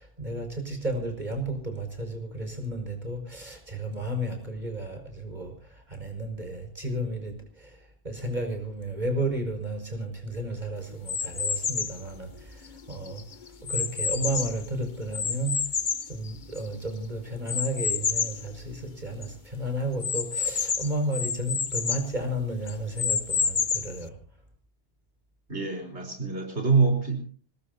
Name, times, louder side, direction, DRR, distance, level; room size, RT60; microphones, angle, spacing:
voice 1, 0.0-7.8 8.0-13.2 13.6-15.6 16.1-24.1, right 1 dB, 40° right, 5 dB, 6.0 m, -33 dB
sound 1, 11.1-12.0 12.6-14.7 15.1-16.8 17.5-18.4 18.9-19.0 19.2-19.3 20.0-22.1 22.7-24.0, left 6 dB, 45° left, 1.1 m, -29 dB
voice 2, 25.5-27.2, right 4 dB, 80° right, 3 dB, 4.5 m, -25 dB
25.5 x 20.5 x 2.8 m, 0.42 s
omnidirectional pair, 1.1 m